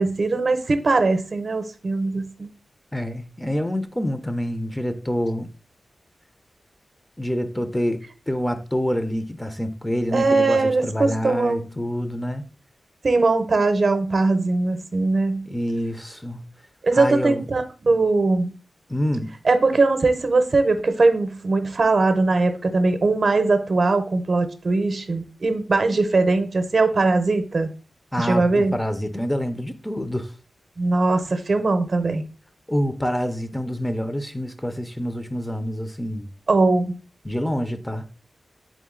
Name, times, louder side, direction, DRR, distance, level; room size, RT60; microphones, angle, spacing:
voice 1, 0.0-2.5 10.1-11.7 13.0-15.5 16.8-18.5 19.4-27.7 28.2-28.7 30.8-32.2 36.5-36.9, right 3 dB, 60° right, 0.6 m, -20 dB
voice 2, 2.9-5.5 7.2-12.5 15.5-16.4 16.9-17.5 18.9-19.3 28.1-30.3 32.7-36.3 37.2-38.0, equal, 10° left, 0.6 m, -27 dB
3.8 x 3.7 x 3.7 m
cardioid pair, 55°, 0 cm